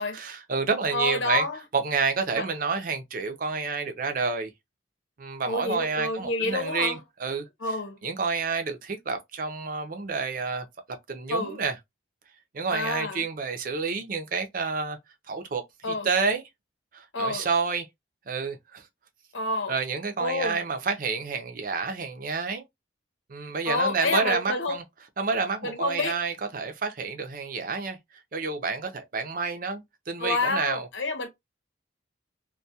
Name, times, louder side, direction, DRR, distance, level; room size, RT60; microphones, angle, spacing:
voice 1, 0.0-1.5 1.7-4.5 5.2-7.4 8.0-10.6 11.1-11.8 12.5-15.0 15.3-16.4 16.9-17.9 18.3-18.8 19.7-22.6 23.3-24.8 25.2-28.0 28.3-30.9, right 4 dB, 45° right, 0.5 m, -29 dB
voice 2, 0.9-1.6 2.3-2.5 5.5-7.0 7.6-8.0 11.3-11.6 12.7-13.2 15.8-16.1 17.1-17.5 19.3-19.8 20.2-20.6 23.7-24.8 25.6-26.1 30.2-31.3, left 3 dB, 85° left, 0.8 m, -28 dB
2.3 x 2.2 x 2.6 m
head